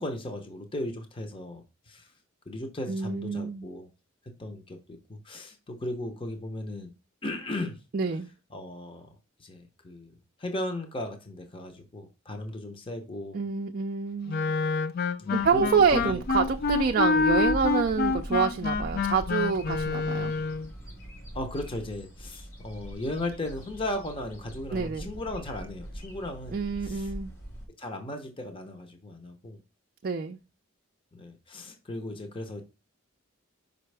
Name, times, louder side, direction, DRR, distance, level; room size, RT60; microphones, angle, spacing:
voice 1, 0.0-2.1 2.5-3.9 4.2-6.9 7.2-7.8 8.5-9.1 9.4-10.1 10.4-13.4 15.2-16.2 21.3-27.1 27.8-29.6 31.1-32.6, left 1 dB, 25° left, 0.8 m, -36 dB
voice 2, 2.9-3.7 7.9-8.3 13.3-14.5 15.3-20.3 24.7-25.1 26.5-27.3 30.0-30.4, right 5 dB, 45° right, 0.4 m, -27 dB
Wind instrument woodwind instrument, 14.3-20.7, left 4 dB, 45° left, 0.3 m, -27 dB
sound 1, 15.4-27.7, right 1 dB, 80° left, 3.8 m, -42 dB
5.6 x 5.3 x 3.4 m
head